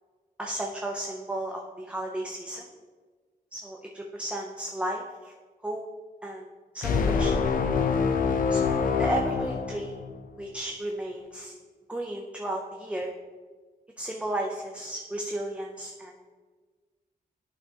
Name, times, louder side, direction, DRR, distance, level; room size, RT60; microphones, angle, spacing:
voice 1, 0.4-2.7 3.5-5.3 5.6-5.8 6.2-7.4 8.5-10.0 10.4-11.5 11.9-13.1 14.0-16.3, right 1 dB, 10° right, 0 dB, 0.5 m, -34 dB
sound 1, 6.8-10.3, left 5 dB, 65° left, 0.6 m, -25 dB
11.0 x 5.5 x 2.8 m, 1.4 s
wide cardioid pair, 155°, 15 cm